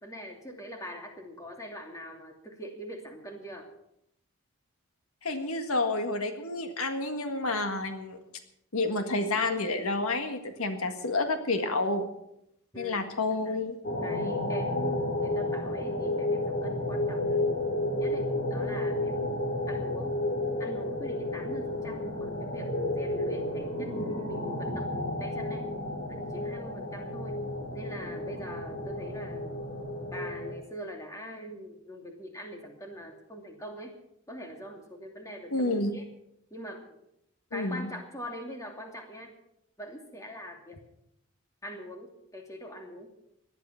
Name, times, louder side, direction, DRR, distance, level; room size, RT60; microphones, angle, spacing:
voice 1, 0.0-3.7 12.7-13.1 14.0-19.2 19.7-20.1 20.6-25.6 26.1-27.4 27.7-29.6 30.1-33.9 34.3-36.0 36.5-37.0 37.5-39.3 39.8-40.8 41.6-42.1 42.3-43.1, equal, 15° left, 2 dB, 2.6 m, -43 dB
voice 2, 5.2-8.2 8.7-12.1 12.8-13.8 35.5-35.9 37.5-37.9, left 2 dB, 85° left, 6 dB, 1.8 m, -29 dB
sound 1, 13.8-30.5, left 1 dB, 50° left, 4.1 m, -31 dB
18.5 x 12.0 x 5.8 m, 0.79 s
head